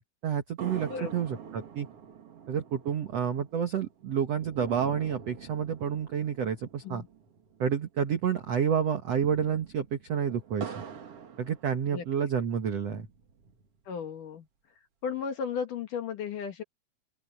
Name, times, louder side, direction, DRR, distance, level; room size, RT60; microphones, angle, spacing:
voice 1, 0.0-1.9 2.5-7.0 7.6-10.8 11.4-13.1, right 8 dB, 80° right, 1.4 m, -29 dB
sound 1, 0.6-8.2 8.4-8.5 9.0-12.3 12.9-13.9, right 7 dB, 50° right, 1.9 m, -45 dB
voice 2, 0.9-1.2 6.8-7.1 11.9-12.1 13.9-14.5 15.0-16.6, left 7 dB, 60° left, 2.5 m, -34 dB
open air
omnidirectional pair, 5.3 m